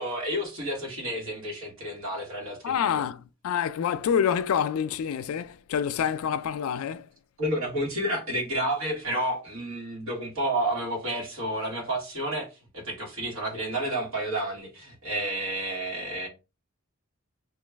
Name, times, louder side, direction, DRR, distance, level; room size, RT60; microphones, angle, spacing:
voice 1, 0.0-2.9 7.4-12.5 12.7-16.3, right 1 dB, 70° right, 1.4 m, -30 dB
voice 2, 2.6-7.1, left 8 dB, 75° left, 0.3 m, -27 dB
3.0 x 2.3 x 3.4 m
head